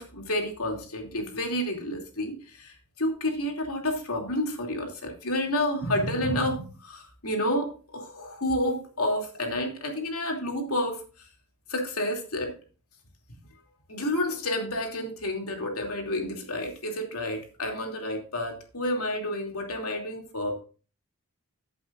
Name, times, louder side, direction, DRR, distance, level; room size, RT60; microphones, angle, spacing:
voice 1, 0.0-11.0 11.7-12.5 13.9-20.6, left 1 dB, 75° left, 2 dB, 2.9 m, -30 dB
15.0 x 8.2 x 2.6 m, 0.36 s
head